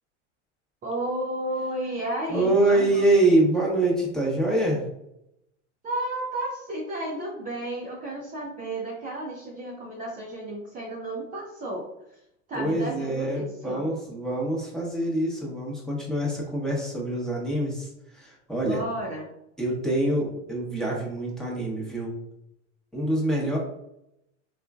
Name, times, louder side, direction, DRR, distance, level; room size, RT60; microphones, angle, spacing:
voice 1, 0.8-3.1 5.8-11.8 12.5-13.9 18.6-19.3, right 1 dB, 20° right, -3 dB, 0.6 m, -32 dB
voice 2, 2.3-4.8 12.5-18.8 19.6-22.1 22.9-23.6, right 1 dB, ahead, -4 dB, 1.0 m, -25 dB
3.6 x 2.4 x 2.4 m, 0.82 s
hypercardioid pair, 95°, 38 cm